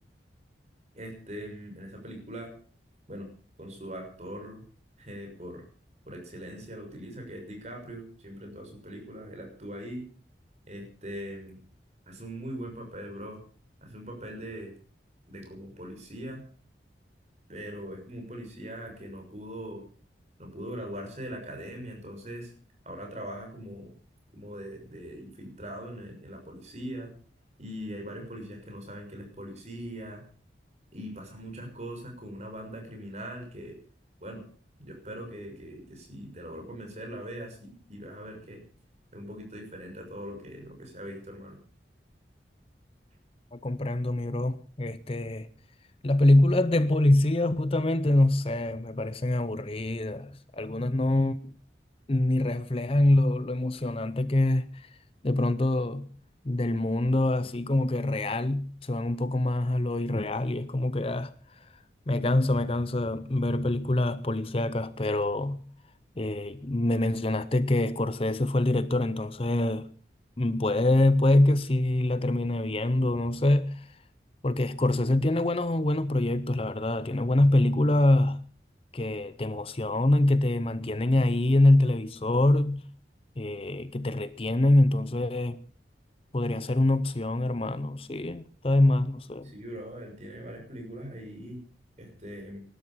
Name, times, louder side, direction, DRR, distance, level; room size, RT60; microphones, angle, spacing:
voice 1, 0.9-2.5 3.1-3.3 3.6-4.6 5.0-5.6 6.1-10.1 10.7-11.6 12.1-13.4 13.8-14.7 15.3-16.4 17.5-19.8 20.4-22.5 22.8-23.9 24.3-27.1 27.6-30.2 30.9-33.8 34.2-34.4 34.8-38.6 39.1-41.6 89.4-91.6 92.0-92.6, equal, 40° right, 6.3 m, -41 dB
voice 2, 43.5-45.5 46.0-51.4 52.1-54.9 55.2-56.1 56.4-61.3 62.1-65.7 66.2-69.9 70.4-73.9 74.4-78.4 78.9-82.8 83.4-85.6 86.3-89.5, left 1 dB, 30° left, 0.7 m, -25 dB
19.0 x 12.5 x 5.7 m
head